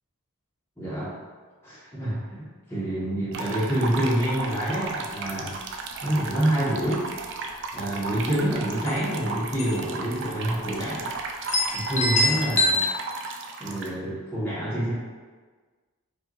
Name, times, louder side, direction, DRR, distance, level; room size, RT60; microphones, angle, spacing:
voice 1, 0.8-1.2 1.6-5.5 6.0-7.0 7.7-11.1 11.7-12.8 13.6-14.9, right 1 dB, 10° left, -10 dB, 1.0 m, -27 dB
sound 1, 3.3-13.9, right 3 dB, 55° right, 0.4 m, -35 dB
sound 2, 4.5-4.6 4.8-4.9 5.3-5.7 6.3-6.5 6.8-7.4 8.5-8.6 8.9-9.0 9.6-9.9 10.2-10.3 10.9-11.0 11.5-12.7, left 1 dB, 30° left, 0.5 m, -25 dB
4.7 x 2.5 x 3.0 m, 1.4 s
head